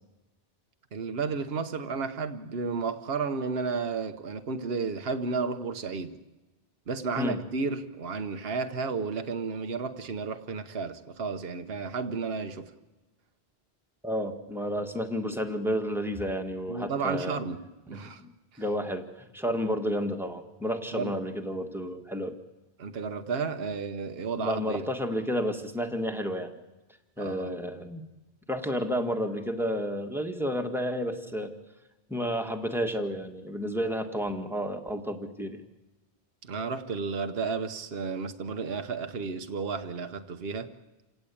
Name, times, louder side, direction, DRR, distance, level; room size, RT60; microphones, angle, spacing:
voice 1, 0.9-6.2 6.9-12.7 16.7-17.6 17.9-18.2 18.5-18.6 20.9-21.1 22.8-24.9 27.2-27.5 36.4-40.7, right 4 dB, 65° right, 8 dB, 1.2 m, -32 dB
voice 2, 14.0-17.4 17.9-18.3 18.6-19.0 19.3-22.4 24.4-26.5 27.2-28.0 28.5-31.5 32.1-35.6, equal, ahead, 4 dB, 1.8 m, -31 dB
28.0 x 17.5 x 8.6 m, 1.1 s
omnidirectional pair, 1.1 m